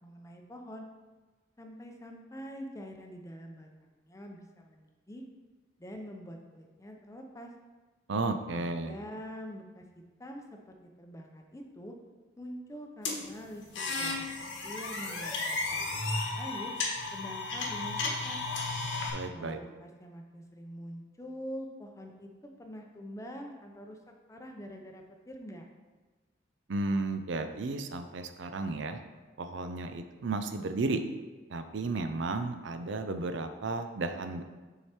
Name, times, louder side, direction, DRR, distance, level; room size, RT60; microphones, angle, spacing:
voice 1, 0.0-0.9 1.6-5.2 5.8-7.5 8.5-9.8 10.2-12.0 12.4-14.3 14.6-16.7 17.1-18.4 19.3-24.0 24.3-25.7, equal, 15° left, 2 dB, 0.6 m, -45 dB
voice 2, 8.1-8.9 19.1-19.6 26.7-29.0 29.4-31.0 31.5-34.4, right 3 dB, 75° right, 8 dB, 0.5 m, -33 dB
sound 1, 13.1-19.1, left 3 dB, 80° left, 1.3 m, -34 dB
6.5 x 4.8 x 4.4 m, 1.3 s
head